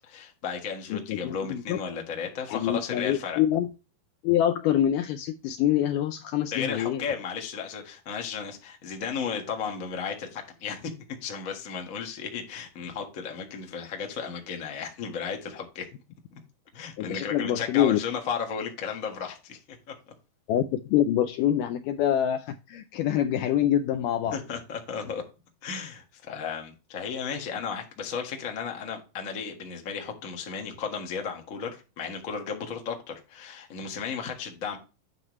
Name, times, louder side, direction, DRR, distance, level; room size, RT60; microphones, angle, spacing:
voice 1, 0.1-3.4 6.5-10.9 11.2-15.9 16.7-19.6 24.3-25.2 25.6-34.8, left 6 dB, 60° left, 0.8 m, -34 dB
voice 2, 0.9-1.8 2.5-3.7 4.2-7.0 17.0-18.0 20.5-24.4, left 11 dB, 85° left, 1.9 m, -25 dB
9.2 x 5.9 x 3.1 m
omnidirectional pair, 4.2 m